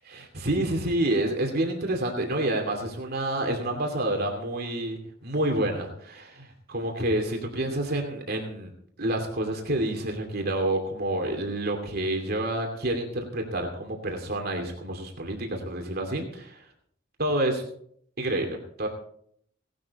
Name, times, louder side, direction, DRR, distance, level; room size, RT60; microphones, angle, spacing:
voice 1, 0.1-8.7 9.0-16.6 17.2-17.6 18.2-18.9, right 1 dB, 55° right, 2 dB, 2.6 m, -28 dB
18.0 x 12.0 x 4.2 m, 0.65 s
head